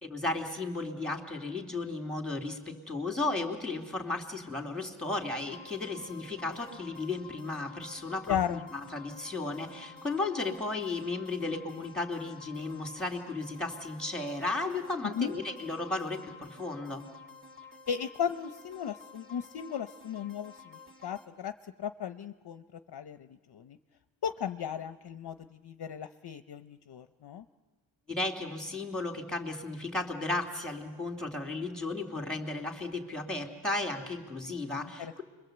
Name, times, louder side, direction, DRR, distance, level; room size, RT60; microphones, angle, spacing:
voice 1, 0.0-17.1 28.1-35.2, left 2 dB, ahead, 3 dB, 2.8 m, -34 dB
sound 1, 5.4-21.3, left 5 dB, 25° right, 3.1 m, -51 dB
voice 2, 8.3-8.7 15.2-15.3 17.9-21.5 21.8-22.6 22.9-23.8 24.2-25.4 25.6-27.4 35.0-35.1, left 8 dB, 55° left, 10 dB, 0.7 m, -35 dB
29.5 x 22.5 x 7.9 m, 1.3 s
wide cardioid pair, 120°, 48 cm